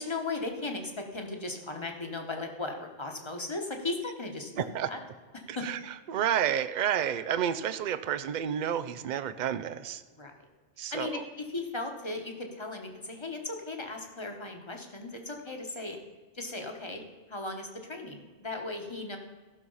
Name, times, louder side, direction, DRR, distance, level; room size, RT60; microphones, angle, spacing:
voice 1, 0.0-5.0 5.3-5.7 10.2-10.3 10.9-16.0 16.3-17.0 17.3-19.2, left 3 dB, 25° left, 3 dB, 1.3 m, -37 dB
voice 2, 4.6-4.9 5.5-5.8 6.1-10.0 10.8-11.2, right 9 dB, 55° right, 12 dB, 0.6 m, -30 dB
15.0 x 6.2 x 5.5 m, 1.4 s
omnidirectional pair, 1.1 m